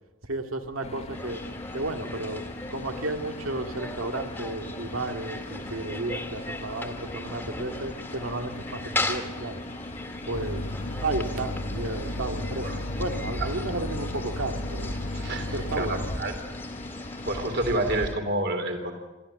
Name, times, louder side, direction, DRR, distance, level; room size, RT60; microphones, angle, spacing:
voice 1, 0.2-1.4 1.7-9.6 10.3-10.6 11.0-12.7 13.0-15.0 15.5-16.0, right 2 dB, 75° right, 5 dB, 2.1 m, -33 dB
sound 1, 0.8-17.8, left 2 dB, 30° left, 0.9 m, -40 dB
sound 2, 1.1-18.2, left 1 dB, 10° left, 1.9 m, -38 dB
sound 3, 10.3-16.2, left 1 dB, 60° left, 1.2 m, -34 dB
voice 2, 15.1-16.3 17.2-18.9, right 1 dB, 55° right, 5 dB, 3.6 m, -29 dB
22.5 x 14.0 x 9.1 m, 1.1 s
head